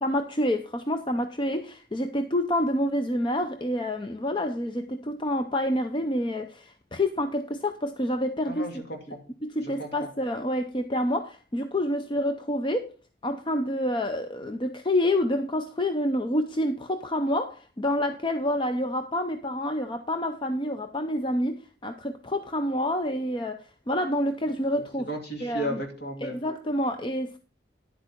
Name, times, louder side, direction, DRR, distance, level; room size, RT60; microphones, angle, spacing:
voice 1, 0.0-8.8 9.4-12.9 13.2-25.1 25.4-25.8 26.2-27.4, left 1 dB, 25° left, 0.6 m, -28 dB
voice 2, 8.5-9.2 9.6-9.9 25.1-26.4, right 1 dB, 55° left, 2.6 m, -34 dB
10.5 x 8.2 x 4.4 m
head